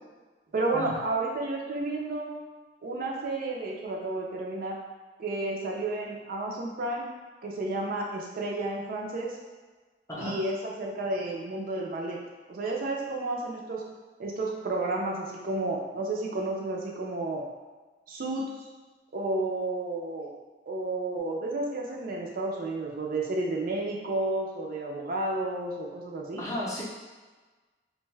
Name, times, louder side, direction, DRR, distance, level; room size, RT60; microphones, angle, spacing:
voice 1, 0.5-2.3 2.8-4.8 5.2-7.1 7.4-9.4 10.2-12.2 12.5-13.8 14.2-17.4 18.1-18.5 19.1-20.4 20.7-26.4, right 2 dB, 55° right, -1 dB, 0.4 m, -31 dB
voice 2, 26.4-26.8, left 1 dB, 15° left, -6 dB, 0.5 m, -33 dB
2.5 x 2.2 x 3.2 m, 1.3 s
head